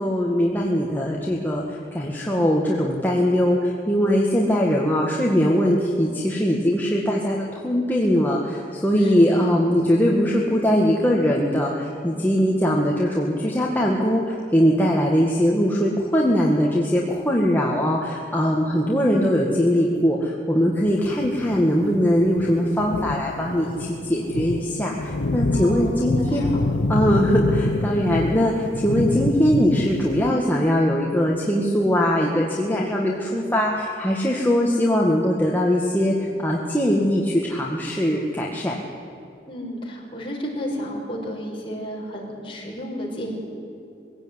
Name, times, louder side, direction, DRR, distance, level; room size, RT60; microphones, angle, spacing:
voice 1, 0.0-26.6 26.9-38.8, equal, 10° left, -2 dB, 1.9 m, -21 dB
voice 2, 9.0-9.4 25.5-26.7 39.5-43.4, equal, 30° left, -1 dB, 5.7 m, -32 dB
sound 1, 20.9-30.3, left 2 dB, 90° left, 0.7 m, -27 dB
22.5 x 17.0 x 9.7 m, 2.7 s
head